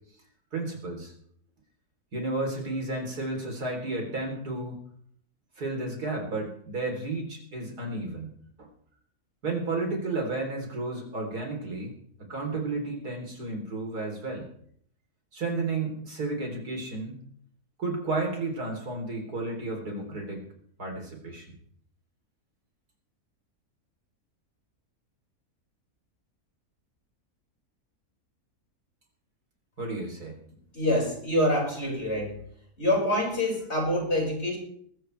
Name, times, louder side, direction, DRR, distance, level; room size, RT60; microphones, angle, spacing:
voice 1, 0.5-1.1 2.1-4.8 5.6-8.3 8.6-8.7 9.4-11.9 12.3-14.5 15.3-17.2 17.8-20.4 20.8-21.5 29.8-30.4, right 2 dB, 85° right, 1 dB, 4.2 m, -32 dB
voice 2, 30.7-32.4 32.8-34.6, left 1 dB, 45° left, -1 dB, 5.8 m, -26 dB
21.0 x 14.5 x 3.4 m, 0.63 s
omnidirectional pair, 1.6 m